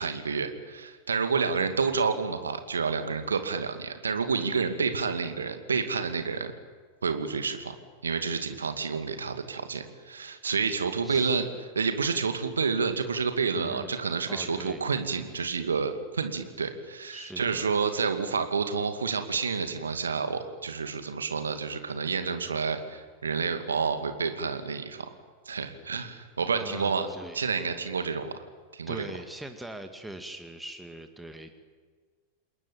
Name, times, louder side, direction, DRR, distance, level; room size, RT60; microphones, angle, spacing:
voice 1, 0.0-6.5 7.0-7.7 8.0-11.5 11.8-25.1 25.5-27.1 27.3-28.4 28.7-29.1, right 5 dB, 70° right, 8 dB, 2.5 m, -29 dB
voice 2, 11.0-11.4 13.5-13.9 14.3-14.8 17.1-17.6 26.6-27.4 28.9-31.6, right 1 dB, 5° right, 6 dB, 2.0 m, -42 dB
28.5 x 21.5 x 9.1 m, 1.5 s
figure-of-eight pair, 90°, 0 cm